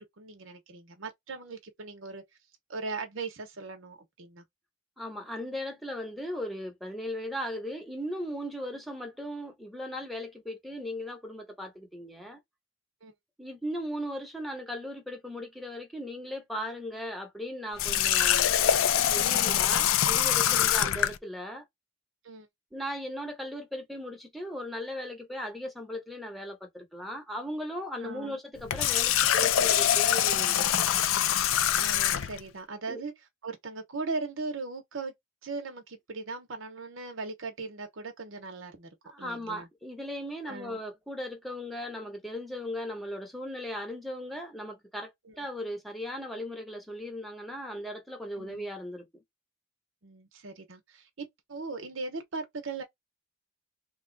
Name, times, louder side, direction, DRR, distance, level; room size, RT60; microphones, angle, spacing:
voice 1, 0.0-2.2 2.7-4.4 13.0-13.1 17.9-18.1 20.4-20.7 22.2-22.5 28.0-28.4 31.8-33.1 33.4-35.1 35.4-38.9 39.2-39.7 40.5-40.8 45.3-45.4 48.4-48.7 50.0-52.8, right 3 dB, 80° right, 0.9 m, -39 dB
voice 2, 5.0-12.4 13.4-18.6 19.1-21.7 22.7-31.0 32.9-33.0 39.0-49.2, equal, ahead, 0.9 m, -37 dB
Water tap faucet, 17.8-21.2 28.6-32.4, left 10 dB, 90° left, 0.4 m, -24 dB
3.0 x 2.3 x 3.8 m
head